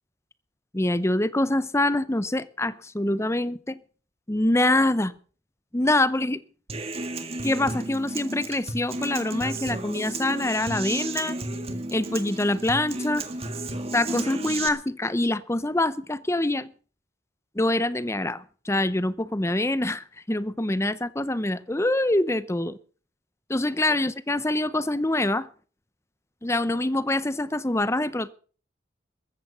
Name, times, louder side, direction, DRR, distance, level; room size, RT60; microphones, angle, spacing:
voice 1, 0.7-3.8 4.3-5.1 5.7-6.4 7.4-11.4 11.9-13.3 13.9-16.7 17.5-22.8 23.5-25.5 26.4-28.3, left 1 dB, 15° left, 17 dB, 0.7 m, -25 dB
Human voice / Acoustic guitar, 6.7-14.7, right 2 dB, 30° right, 1.8 m, -33 dB
14.5 x 14.0 x 5.7 m, 0.41 s
head